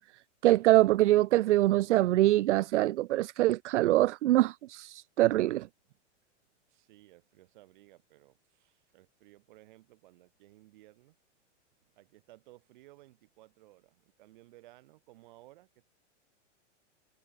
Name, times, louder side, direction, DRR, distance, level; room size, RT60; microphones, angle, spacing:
voice 1, 0.4-5.7, right 15 dB, 70° right, 0.5 m, -24 dB
voice 2, 6.7-11.2 11.9-15.9, right 17 dB, 40° right, 6.9 m, -58 dB
supercardioid pair, 180°, 37 cm